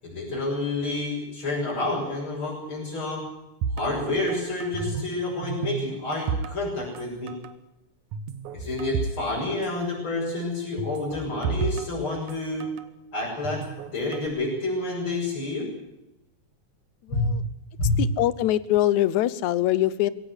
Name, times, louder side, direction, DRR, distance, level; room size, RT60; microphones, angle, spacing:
voice 1, 0.0-3.2 3.8-7.3 8.5-12.7 13.1-13.6 13.9-15.7 17.1-17.2 17.8-18.0, left 2 dB, 40° left, -5 dB, 7.7 m, -29 dB
sound 1, 3.6-5.2 5.4-7.0 7.3-7.5 8.1-9.2 9.5-9.6 10.8-12.9 13.4-14.3, right 6 dB, 75° right, 2.5 m, -31 dB
voice 2, 17.1-17.4 18.0-20.1, left 14 dB, 75° left, 18 dB, 2.2 m, -23 dB
22.0 x 17.0 x 8.2 m, 0.94 s
omnidirectional pair, 3.5 m